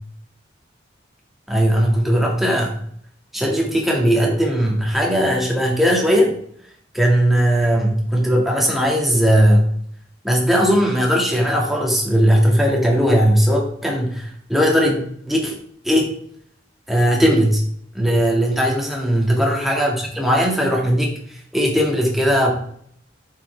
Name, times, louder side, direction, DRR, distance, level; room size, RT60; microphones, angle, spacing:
voice 1, 1.5-2.8 3.3-6.3 6.9-9.7 10.2-15.0 15.3-15.5 15.8-16.2 16.9-17.6 17.9-22.5, equal, ahead, -2 dB, 1.9 m, -18 dB
8.9 x 7.1 x 3.4 m, 0.63 s
head